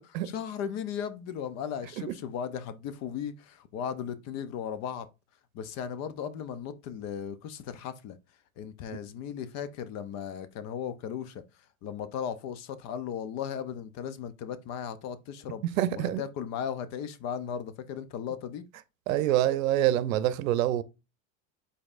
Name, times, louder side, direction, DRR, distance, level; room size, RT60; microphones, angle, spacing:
voice 1, 0.2-5.1 5.5-8.2 8.6-11.4 11.8-15.6 15.9-18.7, left 8 dB, 40° left, 0.6 m, -36 dB
voice 2, 15.6-16.2 19.1-20.8, right 12 dB, 75° right, 0.7 m, -26 dB
5.1 x 4.2 x 2.5 m
supercardioid pair, 125°, 41 cm